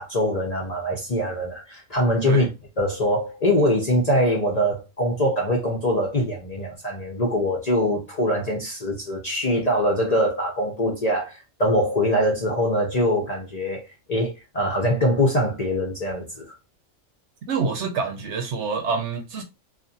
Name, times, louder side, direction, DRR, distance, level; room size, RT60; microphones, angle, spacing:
voice 1, 0.0-2.5 2.8-13.8 14.1-16.5, equal, 40° left, 0.6 m, -23 dB
voice 2, 17.5-19.4, right 5 dB, 65° right, 1.0 m, -26 dB
2.5 x 2.5 x 2.6 m
omnidirectional pair, 1.3 m